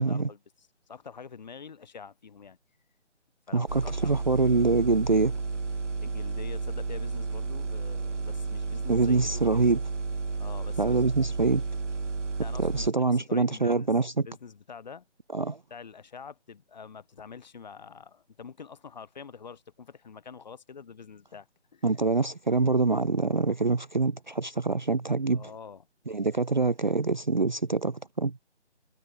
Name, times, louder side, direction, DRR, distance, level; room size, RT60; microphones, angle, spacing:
voice 1, 0.0-2.6 3.5-4.2 6.0-9.7 10.4-11.0 12.4-13.9 14.3-15.1 15.7-21.5 21.7-21.9 25.3-25.8, left 6 dB, 40° left, 7.1 m, -46 dB
voice 2, 3.5-5.4 8.9-9.8 10.8-11.6 12.6-14.3 15.3-15.6 21.8-25.5 26.1-28.4, right 3 dB, 40° right, 0.5 m, -25 dB
sound 1, 3.7-12.9, right 4 dB, 85° right, 2.3 m, -32 dB
figure-of-eight pair, 170°, 35 cm